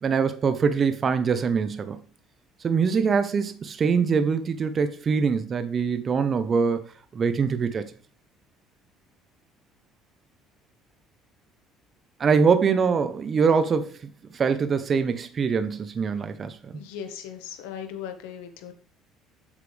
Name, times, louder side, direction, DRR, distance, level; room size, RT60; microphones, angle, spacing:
voice 1, 0.0-2.0 2.6-6.8 7.1-7.8 12.2-16.7, right 5 dB, 35° right, 0.8 m, -23 dB
voice 2, 16.7-18.7, left 8 dB, 90° left, 1.4 m, -38 dB
8.3 x 7.5 x 3.4 m
cardioid pair, 105°, 0 cm